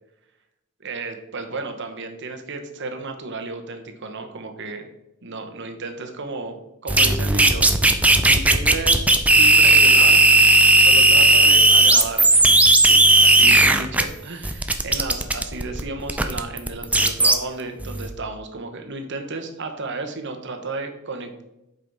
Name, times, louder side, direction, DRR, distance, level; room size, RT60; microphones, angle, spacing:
voice 1, 0.8-4.9 5.2-7.7 8.2-9.1 9.4-10.2 10.8-12.5 12.9-21.4, right 3 dB, 60° right, 5 dB, 1.2 m, -33 dB
sound 1, 6.9-14.0 14.4-17.3 17.8-18.1, right 2 dB, 5° right, 0.5 m, -15 dB
8.0 x 5.4 x 4.1 m, 0.89 s
head